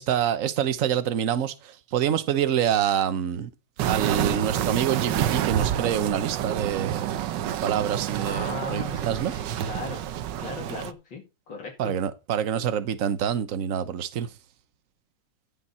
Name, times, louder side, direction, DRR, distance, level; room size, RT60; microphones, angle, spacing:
voice 1, 0.0-3.5 3.8-9.3 11.8-14.3, right 9 dB, 50° right, 1.1 m, -26 dB
sound 1, 3.8-10.9, right 11 dB, 70° right, 1.3 m, -28 dB
voice 2, 8.2-11.9, left 3 dB, 65° left, 3.0 m, -38 dB
15.0 x 5.6 x 4.3 m
omnidirectional pair, 2.2 m